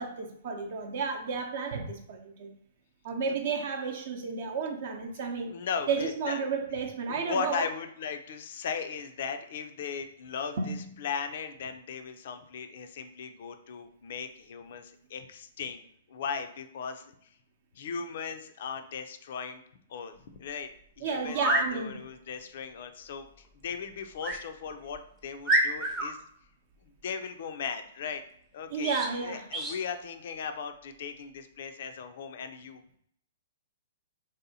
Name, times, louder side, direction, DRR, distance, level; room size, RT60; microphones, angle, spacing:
voice 1, 0.0-2.5 3.0-5.5 5.9-7.6 10.6-10.9 21.0-21.9 28.7-29.4, right 5 dB, 55° right, 3 dB, 0.6 m, -32 dB
voice 2, 5.5-6.4 7.1-15.8 16.1-17.1 17.7-19.6 19.9-20.7 21.0-26.2 27.0-28.2 28.5-28.9 29.2-33.0, left 6 dB, 60° left, 8 dB, 0.3 m, -37 dB
sound 1, 20.4-20.5 21.3-21.7 24.2-24.4 24.9-25.0 25.4-26.1 28.8-29.1 29.5-29.8, right 2 dB, 20° right, 0.6 m, -27 dB
3.4 x 2.7 x 2.7 m, 0.68 s
hypercardioid pair, 120°, 0 cm